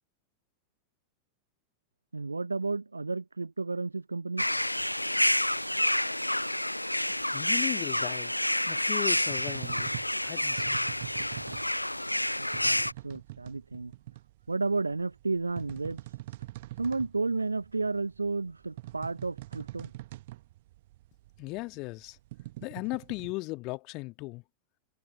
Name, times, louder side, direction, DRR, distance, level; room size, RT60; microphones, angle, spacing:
voice 1, 2.1-4.5 12.4-13.9 14.5-16.0 16.8-19.9, right 3 dB, 80° right, 1.2 m, -32 dB
sound 1, 4.4-12.9, left 1 dB, 85° left, 0.3 m, -29 dB
voice 2, 7.3-8.3 8.7-9.9 10.2-10.8 21.4-22.2 22.6-24.4, left 24 dB, 40° left, 2.1 m, -37 dB
Small Creature Scamper on Tile, 8.9-23.3, right 17 dB, 55° right, 1.2 m, -44 dB
figure-of-eight pair, 90°, 0 cm